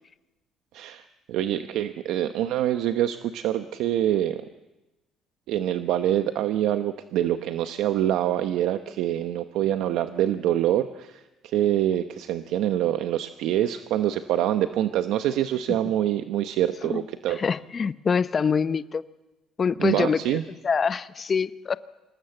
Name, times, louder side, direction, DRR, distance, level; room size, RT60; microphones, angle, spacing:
voice 1, 0.7-4.4 5.5-17.4 19.8-20.4, right 12 dB, 80° right, 0.9 m, -25 dB
voice 2, 17.4-19.0 19.6-20.4 20.6-21.8, left 6 dB, 35° left, 0.8 m, -25 dB
26.5 x 19.0 x 7.9 m
cardioid pair, 100°, 0 cm